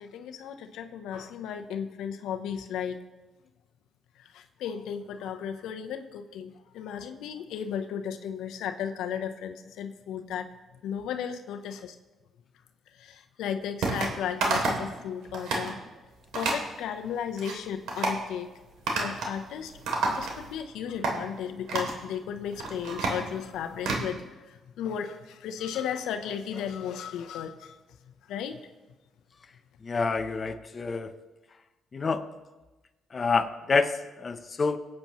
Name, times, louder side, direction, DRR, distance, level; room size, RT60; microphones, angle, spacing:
voice 1, 0.0-3.0 4.2-10.5 10.8-12.0 12.9-15.8 16.3-18.5 18.9-19.7 20.1-27.8 28.3-28.6, left 8 dB, 85° left, 6 dB, 0.8 m, -35 dB
sound 1, 13.8-14.1 14.4-14.9 15.2-15.7 16.3-16.6 17.1-17.5 17.9-18.2 18.9-19.4 19.6-20.6 21.0-21.2 21.7-22.0 22.4-24.0, right 3 dB, 85° right, 2.8 m, -29 dB
voice 2, 29.8-31.1 31.9-32.3 33.1-34.8, left 4 dB, 35° left, 8 dB, 0.8 m, -27 dB
23.5 x 8.7 x 3.1 m, 1.1 s
cardioid pair, 90°, 0 cm